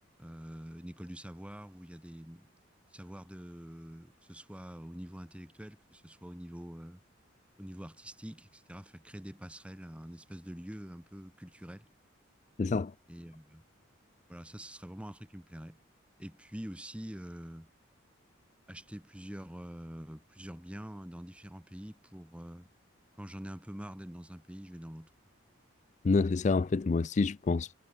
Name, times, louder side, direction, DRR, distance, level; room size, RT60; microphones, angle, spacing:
voice 1, 0.2-2.5 2.9-7.0 7.6-11.9 13.1-13.6 14.3-15.8 16.2-17.7 18.7-22.7 23.2-25.1, equal, 5° right, 1.3 m, -45 dB
voice 2, 12.6-12.9 26.0-27.7, left 4 dB, 35° left, 0.3 m, -27 dB
head